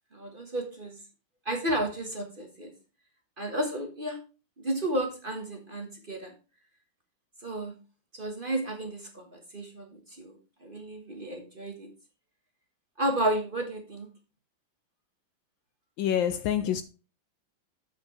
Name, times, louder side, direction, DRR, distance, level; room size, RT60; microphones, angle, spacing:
voice 1, 0.1-1.0 1.4-2.7 3.4-4.2 4.6-6.3 7.4-7.8 8.1-11.9 13.0-14.1, right 1 dB, 30° right, 1.3 m, -32 dB
voice 2, 16.0-16.8, left 10 dB, 75° left, 1.2 m, -26 dB
7.6 x 6.4 x 4.5 m
omnidirectional pair, 2.3 m